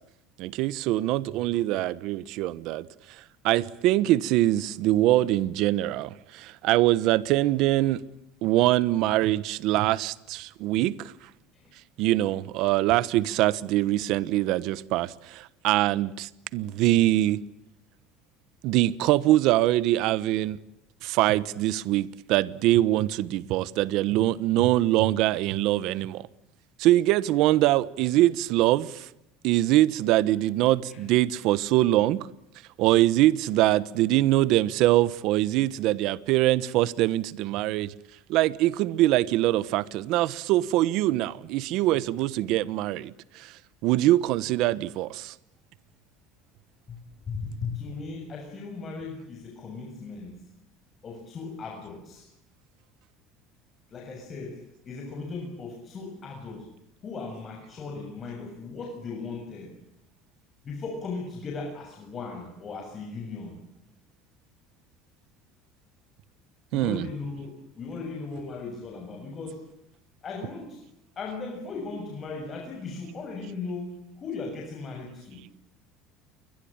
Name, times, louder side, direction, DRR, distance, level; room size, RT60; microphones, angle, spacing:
voice 1, 0.4-2.9 3.4-8.0 8.4-11.1 12.0-17.4 18.6-20.6 21.0-26.3 26.8-29.1 29.4-32.3 32.8-37.9 38.3-45.3 66.7-67.1, right 15 dB, 65° right, 1.2 m, -23 dB
voice 2, 47.3-50.4 51.0-52.3 53.9-56.7 57.0-59.7 60.6-63.6 66.7-69.7 70.2-70.8 71.2-75.4, left 4 dB, 30° left, 6.9 m, -37 dB
29.5 x 22.5 x 8.8 m
cardioid pair, 135°, 0 cm